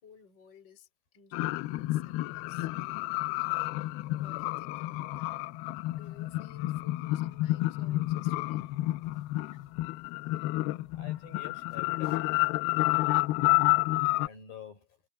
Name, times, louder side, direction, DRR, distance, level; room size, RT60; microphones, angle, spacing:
voice 1, 0.0-0.9 1.1-2.7 4.2-5.3 5.9-8.8 9.5-9.7 10.0-10.1, left 6 dB, 25° left, 4.5 m, -57 dB
sound 1, 1.3-14.3, left 19 dB, 85° left, 2.3 m, -30 dB
voice 2, 10.9-12.5 14.2-14.9, left 7 dB, 55° left, 7.9 m, -48 dB
omnidirectional pair, 4.9 m